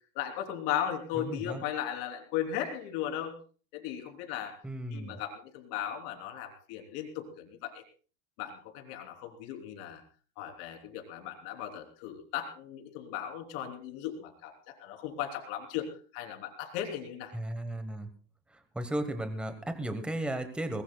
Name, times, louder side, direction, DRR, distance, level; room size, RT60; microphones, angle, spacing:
voice 1, 0.2-3.3 3.7-4.6 4.9-7.8 8.4-10.0 10.4-17.3, left 10 dB, 45° left, 4 dB, 3.5 m, -37 dB
voice 2, 1.2-1.6 4.6-5.2 17.3-18.1 18.5-20.8, right 1 dB, 5° right, 8 dB, 1.2 m, -35 dB
21.5 x 20.5 x 2.3 m, 0.39 s
supercardioid pair, 150°, 39 cm